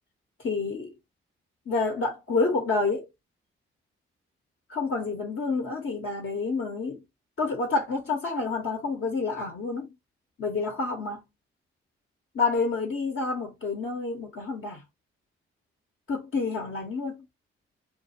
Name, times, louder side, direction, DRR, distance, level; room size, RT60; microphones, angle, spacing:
voice 1, 0.4-0.9 1.7-3.1 4.7-7.0 7.4-9.9 10.4-11.2 12.3-14.8 16.1-17.2, left 3 dB, 45° left, 0.9 m, -28 dB
2.2 x 2.2 x 2.8 m
hypercardioid pair, 40°, 29 cm